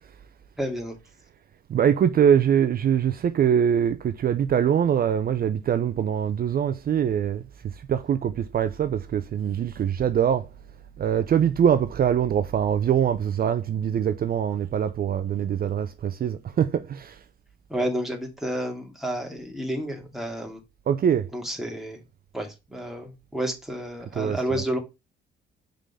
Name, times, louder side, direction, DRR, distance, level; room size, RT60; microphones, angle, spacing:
voice 1, 0.6-0.9 17.7-20.6 21.3-22.0 22.3-24.8, right 1 dB, ahead, 2.4 m, -30 dB
voice 2, 1.7-7.4 7.9-10.5 11.0-17.2 20.9-21.3 24.1-24.6, right 8 dB, 50° right, 0.6 m, -23 dB
5.1 x 3.9 x 5.5 m
cardioid pair, 90°, 20 cm